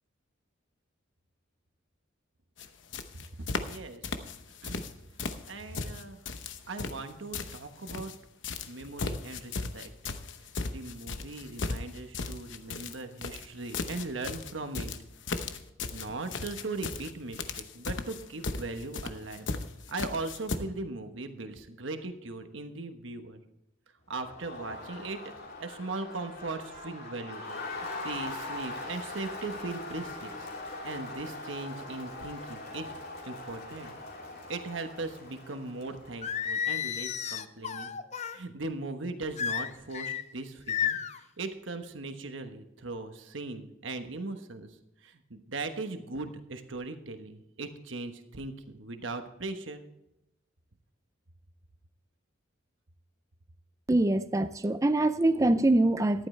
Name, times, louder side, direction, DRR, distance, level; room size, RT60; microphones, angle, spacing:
sound 1, 2.6-2.7 2.9-3.8 4.0-4.9 5.2-8.2 8.4-20.6, left 3 dB, 65° left, 0.9 m, -36 dB
voice 1, 3.5-4.0 4.6-4.8 5.5-6.2 6.7-8.1 8.7-9.9 10.6-14.9 15.9-19.5 19.9-23.4 24.1-25.3 25.6-30.5 30.8-32.9 33.3-33.9 34.5-37.9 38.3-41.0 41.4-44.7 45.0-49.8, right 3 dB, 75° right, 7 dB, 1.2 m, -39 dB
Crowd, 24.1-36.7, left 2 dB, 50° left, 3.0 m, -41 dB
Singing, 36.2-38.4 39.4-40.2 40.7-41.2, left 8 dB, 35° left, 0.5 m, -32 dB
voice 2, 53.9-56.3, right 1 dB, 15° right, 11 dB, 0.4 m, -24 dB
14.0 x 11.5 x 3.3 m, 0.88 s
head